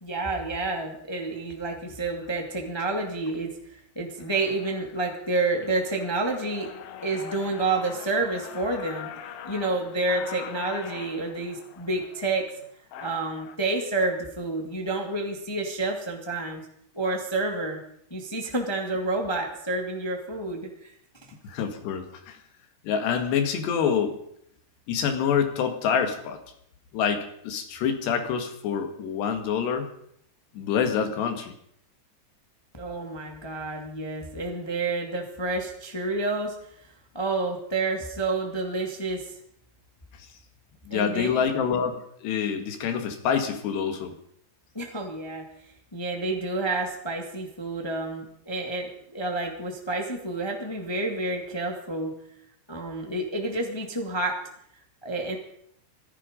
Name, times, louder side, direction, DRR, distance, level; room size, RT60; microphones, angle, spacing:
voice 1, 0.0-3.5 3.9-6.7 7.0-9.1 9.4-12.5 13.0-16.6 16.9-17.8 18.1-20.9 32.8-36.5 37.1-39.3 40.9-41.5 44.7-45.5 45.9-52.1 52.7-54.4 55.0-55.3, right 2 dB, 20° left, 2 dB, 0.7 m, -29 dB
sound 1, 1.3-1.5 2.2-2.4 2.9-3.4 3.8-3.9 4.1-13.6, left 9 dB, 70° left, 2.6 m, -43 dB
voice 2, 21.4-22.4 22.8-24.2 24.9-26.4 26.9-29.9 30.6-31.5 40.9-44.1, left 7 dB, 85° left, 6 dB, 4.0 m, -26 dB
17.0 x 14.5 x 5.2 m, 0.69 s
omnidirectional pair, 4.7 m